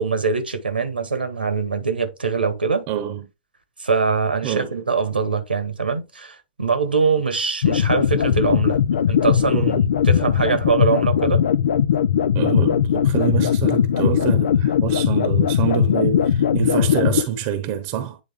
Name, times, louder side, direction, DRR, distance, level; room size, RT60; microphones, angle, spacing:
voice 1, 0.0-2.9 3.8-8.8 9.1-11.5, right 5 dB, 85° right, 1.5 m, -23 dB
voice 2, 2.9-3.3 4.4-4.8 9.5-9.8 12.3-18.2, right 9 dB, 45° right, 1.0 m, -26 dB
sound 1, 7.6-17.2, left 8 dB, 70° left, 0.5 m, -19 dB
9.2 x 3.6 x 3.6 m
figure-of-eight pair, 105°, 5 cm